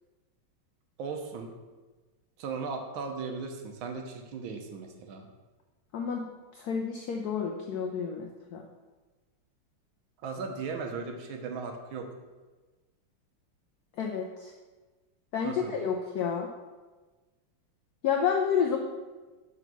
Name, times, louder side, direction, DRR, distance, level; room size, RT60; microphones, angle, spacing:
voice 1, 1.0-1.5 2.4-5.3 10.2-12.1 15.4-15.8, right 4 dB, 75° right, 4 dB, 1.5 m, -37 dB
voice 2, 5.9-6.3 6.5-8.7 14.0-14.5 15.3-16.5 18.0-18.8, left 7 dB, 80° left, 1 dB, 0.8 m, -30 dB
6.1 x 3.9 x 6.0 m, 1.3 s
omnidirectional pair, 2.3 m